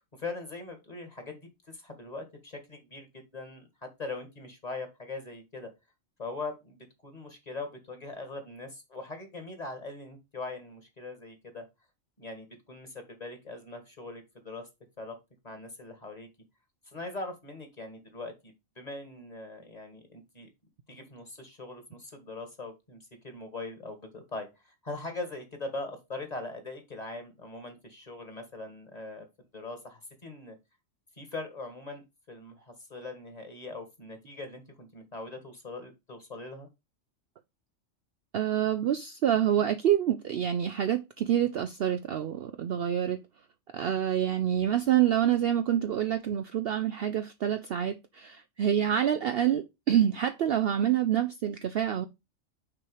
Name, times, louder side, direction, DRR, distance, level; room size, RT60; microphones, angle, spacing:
voice 1, 0.0-5.7 6.2-11.7 12.2-14.7 15.0-15.2 15.4-16.3 16.9-20.5 20.9-23.0 23.2-29.3 29.5-30.6 31.2-36.7, left 3 dB, 30° left, 1.7 m, -41 dB
voice 2, 38.3-43.2 43.7-52.1, right 10 dB, 60° right, 0.6 m, -27 dB
6.2 x 4.4 x 4.7 m
omnidirectional pair, 1.4 m